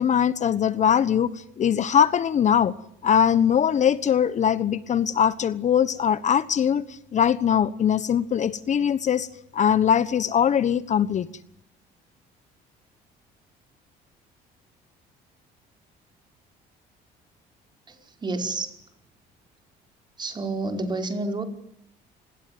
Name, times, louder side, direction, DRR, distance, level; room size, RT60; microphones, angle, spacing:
voice 1, 0.0-2.7 3.0-9.3 9.5-11.3, left 8 dB, 45° left, 15 dB, 1.2 m, -21 dB
voice 2, 17.9-18.7 20.2-21.4, right 2 dB, 25° right, 5 dB, 5.2 m, -29 dB
29.5 x 21.0 x 9.5 m, 0.73 s
cardioid pair, 110°, 17 cm